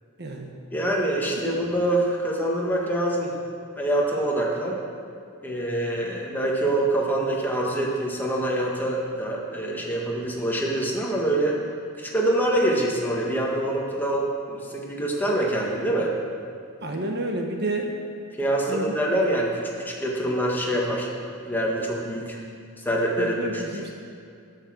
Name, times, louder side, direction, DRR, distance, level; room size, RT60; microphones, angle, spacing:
voice 1, 0.2-0.5 16.8-17.9 18.7-18.9 23.2-24.0, right 1 dB, 50° right, 2 dB, 1.2 m, -30 dB
voice 2, 0.7-3.3 3.8-4.8 5.4-11.5 12.0-16.1 18.4-21.1 21.4-22.4 22.8-23.6, right 1 dB, 10° left, -3 dB, 1.7 m, -25 dB
16.0 x 6.4 x 6.4 m, 2.5 s
head